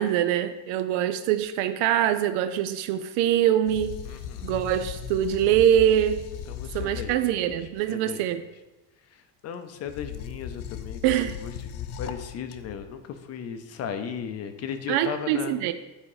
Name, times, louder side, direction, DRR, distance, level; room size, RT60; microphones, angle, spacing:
voice 1, 0.0-4.0 4.4-6.2 6.7-8.4 11.0-11.4 14.9-15.7, right 11 dB, 75° right, 10 dB, 0.5 m, -24 dB
sound 1, 3.7-7.8 9.8-12.9, left 9 dB, 85° left, 0.8 m, -37 dB
voice 2, 4.1-4.5 6.5-7.6 7.9-8.2 9.1-15.6, left 7 dB, 40° left, 9 dB, 0.6 m, -36 dB
8.5 x 4.9 x 4.8 m, 1.1 s
cardioid pair, 155°, 40 cm